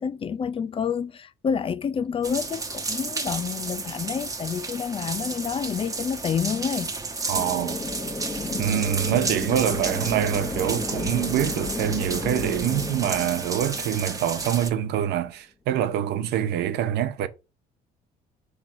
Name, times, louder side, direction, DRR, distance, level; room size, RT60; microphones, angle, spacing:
voice 1, 0.0-6.9 8.5-8.8, left 7 dB, 30° left, 0.5 m, -28 dB
sound 1, 2.2-14.7, right 3 dB, 20° right, 1.2 m, -32 dB
sound 2, 7.3-14.9, left 3 dB, 15° left, 1.3 m, -33 dB
voice 2, 7.3-7.8 8.6-17.3, right 11 dB, 80° right, 0.9 m, -25 dB
6.0 x 3.3 x 5.8 m
cardioid pair, 110°, 17 cm